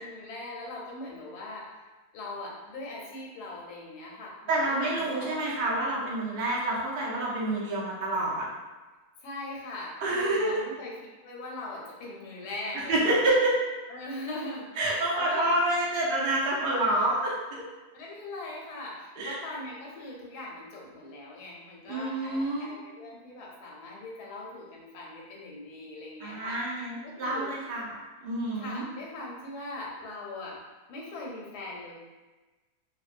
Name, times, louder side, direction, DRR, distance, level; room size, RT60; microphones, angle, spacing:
voice 1, 0.0-1.8 2.1-5.4 9.2-10.9 11.2-13.2 13.9-15.6 17.9-27.5 28.6-30.6 30.9-31.9, left 2 dB, 85° left, -2 dB, 1.2 m, -40 dB
voice 2, 4.5-8.4 10.0-10.5 12.9-13.6 14.8-17.3 19.2-19.4 21.9-22.7 26.2-27.8 28.2-28.8, right 1 dB, 85° right, -5 dB, 0.4 m, -27 dB
2.6 x 2.1 x 2.4 m, 1.2 s
omnidirectional pair, 1.7 m